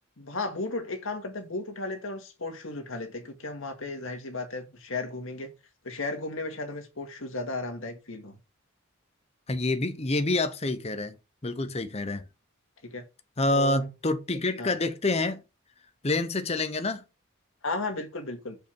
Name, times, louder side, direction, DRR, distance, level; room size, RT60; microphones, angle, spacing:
voice 1, 0.2-5.5 5.8-8.4 12.8-13.1 13.5-13.9 14.6-14.7 17.6-18.6, left 2 dB, 65° left, 2.0 m, -35 dB
voice 2, 9.5-11.2 11.4-12.2 13.4-15.4 16.0-17.0, left 2 dB, 30° left, 0.8 m, -27 dB
6.9 x 5.6 x 6.0 m
head